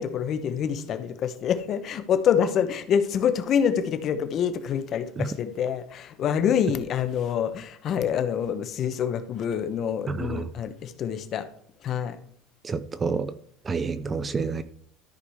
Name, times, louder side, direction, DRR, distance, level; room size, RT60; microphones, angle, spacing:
voice 1, 0.0-11.5 11.8-12.2, left 8 dB, 35° left, 10 dB, 1.0 m, -26 dB
voice 2, 10.1-10.5 12.6-13.4 13.6-14.6, right 4 dB, 20° right, 14 dB, 0.4 m, -29 dB
13.0 x 4.9 x 4.9 m, 0.63 s
cardioid pair, 150°, 0 cm